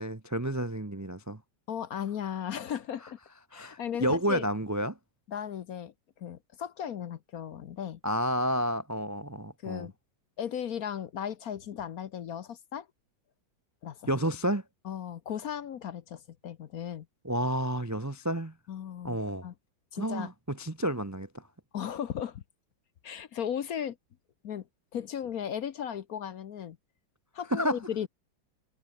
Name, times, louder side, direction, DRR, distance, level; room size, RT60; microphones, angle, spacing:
voice 1, 0.0-1.4 3.5-5.0 8.0-9.9 14.1-14.6 17.2-18.5 19.0-19.5 20.0-21.4 27.5-27.8, equal, 25° right, 0.3 m, -30 dB
voice 2, 1.7-3.2 3.5-4.5 5.3-8.0 9.6-9.9 10.4-12.9 13.8-14.1 14.8-17.1 18.7-19.2 19.4-19.5 19.9-20.3 21.7-22.4 23.0-24.0 24.4-24.7 24.9-26.8 27.3-28.1, left 9 dB, 55° left, 1.1 m, -36 dB
omnidirectional pair, 2.1 m